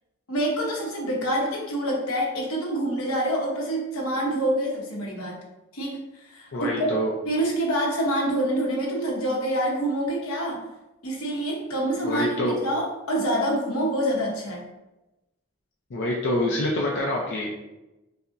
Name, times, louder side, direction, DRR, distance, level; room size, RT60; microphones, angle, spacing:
voice 1, 0.3-5.4 5.7-10.7 11.0-14.6, right 1 dB, 85° left, -1 dB, 0.9 m, -26 dB
voice 2, 6.5-7.1 12.0-12.6 15.9-17.5, left 1 dB, 60° left, -3 dB, 0.5 m, -26 dB
5.3 x 2.1 x 2.5 m, 1.0 s
head